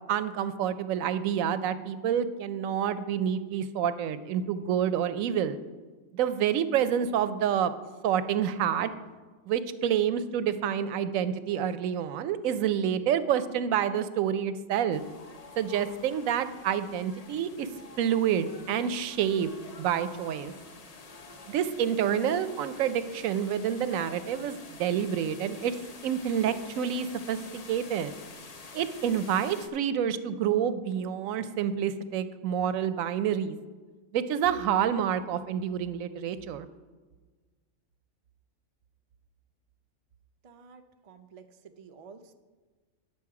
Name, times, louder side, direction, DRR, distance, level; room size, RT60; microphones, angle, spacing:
voice 1, 0.1-5.6 6.1-7.7 8.0-8.9 9.5-15.0 15.6-17.7 18.0-19.5 19.8-20.5 21.5-25.7 26.0-28.1 28.7-33.6 34.1-36.7, right 9 dB, 80° right, 12 dB, 1.0 m, -28 dB
sound 1, 14.9-29.7, left 3 dB, 40° left, 0.6 m, -48 dB
voice 2, 40.4-41.4 41.8-42.3, right 5 dB, 55° right, 6 dB, 0.4 m, -51 dB
10.0 x 6.8 x 4.7 m, 1.4 s
omnidirectional pair, 1.4 m